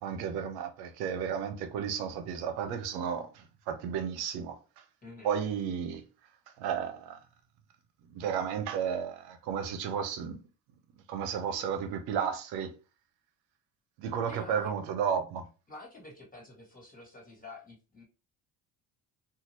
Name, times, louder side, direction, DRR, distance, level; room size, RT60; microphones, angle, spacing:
voice 1, 0.0-4.6 5.2-6.0 6.6-7.2 8.1-10.4 11.1-12.7 14.0-15.4, right 7 dB, 75° right, 0.7 m, -33 dB
voice 2, 5.0-5.3 14.3-14.7 15.7-18.0, left 2 dB, 20° left, 1.5 m, -48 dB
2.8 x 2.4 x 2.8 m
supercardioid pair, 75°, 39 cm